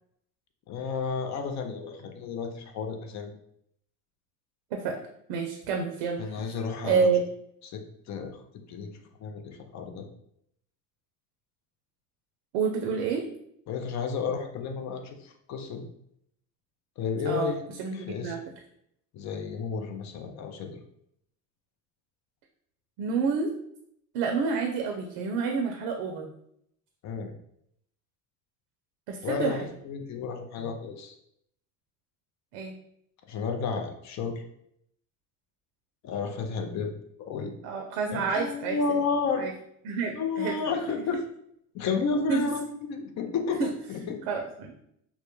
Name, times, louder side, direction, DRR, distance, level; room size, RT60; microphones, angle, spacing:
voice 1, 0.7-3.3 6.2-7.1 7.6-8.4 8.7-8.9 9.2-10.1 13.7-15.9 17.0-17.6 17.9-18.4 19.1-20.8 27.0-27.3 29.2-31.1 33.3-34.4 36.0-36.9 37.2-37.5 38.1-39.4 40.1-41.2 41.7-44.2, left 5 dB, 40° left, 5 dB, 0.4 m, -32 dB
voice 2, 5.3-6.4 6.8-7.2 12.5-13.2 17.3-17.5 17.8-18.4 23.0-23.5 24.1-26.3 29.1-29.7 32.5-32.7 37.6-38.8 39.4-39.5 39.8-40.6 42.3-42.4 43.6-43.7 44.3-44.7, right 5 dB, 70° right, 3 dB, 0.5 m, -28 dB
2.1 x 2.1 x 2.9 m, 0.73 s
hypercardioid pair, 75°, 46 cm